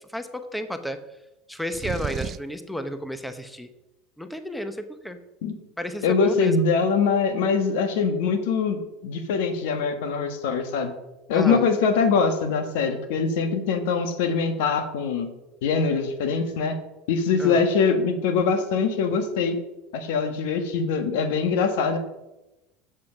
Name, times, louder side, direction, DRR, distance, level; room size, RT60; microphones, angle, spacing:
voice 1, 0.1-1.0 1.5-3.7 4.2-5.2 5.8-6.6 11.3-11.7 17.4-17.6, equal, 5° left, 9 dB, 0.9 m, -32 dB
sound 1, 1.7-2.6, right 8 dB, 40° right, 0.4 m, -32 dB
voice 2, 6.0-10.9 11.3-15.3 15.6-16.8 17.1-19.5 19.9-22.0, left 5 dB, 75° left, 8 dB, 1.5 m, -23 dB
7.4 x 7.4 x 6.0 m, 0.96 s
hypercardioid pair, 95°, 0 cm